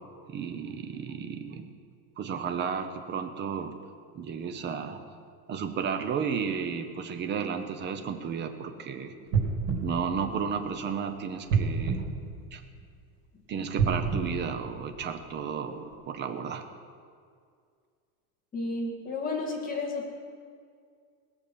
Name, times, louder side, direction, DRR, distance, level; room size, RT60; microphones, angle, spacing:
voice 1, 0.3-1.7 2.2-3.8 4.1-5.0 5.5-9.1 9.8-12.0 12.5-12.6 13.5-16.7, right 6 dB, 25° right, 7 dB, 0.7 m, -33 dB
sound 1, 9.3-10.9 11.5-13.0 13.7-15.4 15.9-16.0, right 5 dB, 75° right, 3.3 m, -30 dB
voice 2, 18.5-20.0, left 3 dB, 20° left, -1 dB, 2.0 m, -32 dB
19.5 x 7.1 x 6.2 m, 2.2 s
cardioid pair, 170°, 46 cm